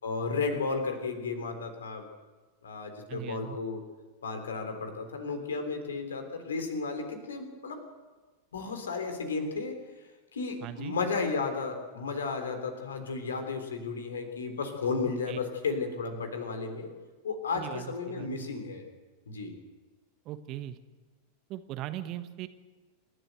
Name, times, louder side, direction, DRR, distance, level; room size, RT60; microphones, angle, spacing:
voice 1, 0.0-2.1 2.6-3.8 4.2-7.8 8.5-9.8 10.3-16.9 17.2-18.8 19.3-19.5, left 4 dB, 70° left, 6 dB, 3.6 m, -33 dB
voice 2, 3.1-3.6 10.6-11.0 15.0-15.4 17.5-18.5 20.2-20.8 21.5-22.5, right 13 dB, 40° right, 11 dB, 1.4 m, -39 dB
28.5 x 12.5 x 7.9 m, 1.3 s
figure-of-eight pair, 90°, 0 cm